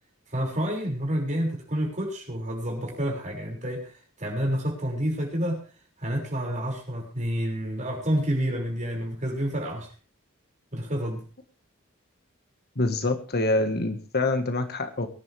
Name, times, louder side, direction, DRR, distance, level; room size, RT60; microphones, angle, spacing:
voice 1, 0.3-3.9 4.2-5.6 6.0-9.9 10.7-11.2, equal, 35° right, 1 dB, 6.1 m, -29 dB
voice 2, 12.8-15.1, left 2 dB, 50° left, 7 dB, 1.7 m, -26 dB
23.5 x 11.0 x 3.5 m, 0.37 s
head